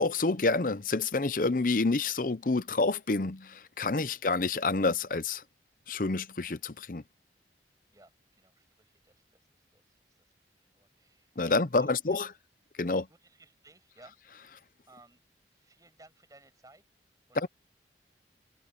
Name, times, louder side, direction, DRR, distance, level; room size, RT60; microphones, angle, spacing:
voice 1, 0.0-5.4 5.9-7.0 11.4-12.3 12.8-13.1 17.4-17.5, left 3 dB, 50° left, 0.7 m, -28 dB
voice 2, 4.0-4.4 7.9-10.3 10.6-12.3 13.1-14.2 14.9-16.8 17.3-17.5, right 2 dB, 20° right, 6.0 m, -59 dB
head